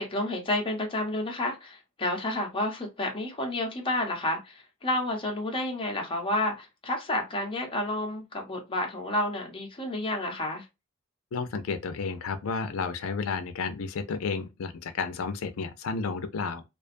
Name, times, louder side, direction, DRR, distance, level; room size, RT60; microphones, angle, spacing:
voice 1, 0.0-10.6, left 1 dB, 25° left, 0.7 m, -30 dB
voice 2, 11.3-16.6, left 5 dB, 85° left, 0.4 m, -32 dB
2.4 x 2.3 x 2.5 m
head